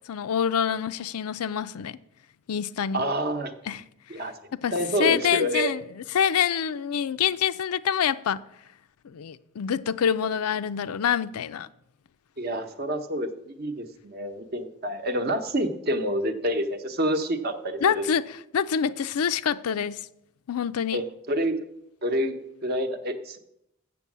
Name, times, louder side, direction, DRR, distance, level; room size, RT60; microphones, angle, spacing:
voice 1, 0.1-2.0 2.5-3.0 3.7-3.8 4.6-4.7 5.0-8.4 9.0-11.7 17.8-20.1 20.5-21.0, left 8 dB, 85° left, 0.4 m, -26 dB
voice 2, 2.9-3.5 4.1-4.3 4.7-5.7 12.4-18.1 20.9-21.6 22.0-22.3 22.6-23.4, equal, 45° right, 0.8 m, -28 dB
7.2 x 6.9 x 7.3 m
head